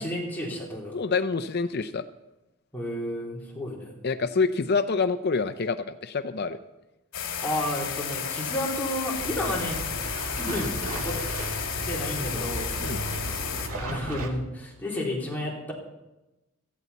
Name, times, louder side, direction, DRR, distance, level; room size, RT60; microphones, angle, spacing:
voice 1, 0.0-1.0 2.7-4.0 7.4-9.8 10.4-11.2 11.9-12.7 13.7-15.7, left 1 dB, 10° left, -4 dB, 3.4 m, -31 dB
voice 2, 0.9-2.0 4.0-6.6 12.8-13.0, left 4 dB, 50° left, 10 dB, 0.6 m, -26 dB
sound 1, 7.1-13.7, left 7 dB, 65° left, 2.5 m, -32 dB
sound 2, 9.2-14.3, right 1 dB, 85° right, 1.9 m, -35 dB
17.5 x 15.0 x 4.2 m, 0.99 s
head